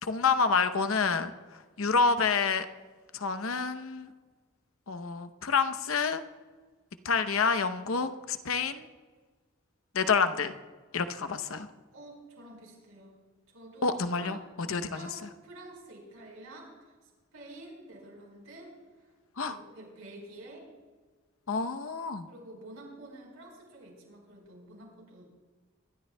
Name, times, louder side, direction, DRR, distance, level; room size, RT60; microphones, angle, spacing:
voice 1, 0.0-1.3 1.8-2.7 3.1-4.1 4.9-6.2 7.0-8.9 9.9-10.5 10.9-11.7 13.8-15.1 19.4-19.6 21.5-22.3, left 5 dB, 80° left, 10 dB, 0.8 m, -28 dB
voice 2, 11.9-13.2 13.5-14.3 14.6-19.1 19.4-20.7 22.3-25.2, right 1 dB, 85° right, -1 dB, 4.6 m, -49 dB
24.5 x 12.5 x 2.2 m, 1.4 s
head